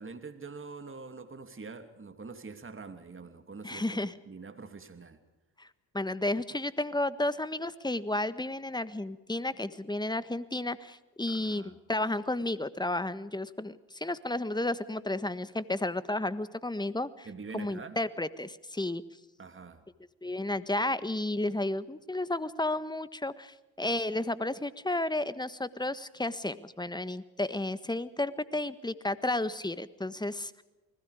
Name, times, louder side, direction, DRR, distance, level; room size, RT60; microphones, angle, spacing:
voice 1, 0.0-4.0 4.3-5.2 11.3-11.7 17.3-18.0 19.4-19.8, right 4 dB, 30° right, 8 dB, 2.8 m, -44 dB
voice 2, 3.6-4.1 5.6-5.7 5.9-17.3 17.5-19.0 20.2-30.6, left 2 dB, 10° left, 14 dB, 1.5 m, -32 dB
29.5 x 20.5 x 5.0 m, 1.1 s
hypercardioid pair, 55°, 44 cm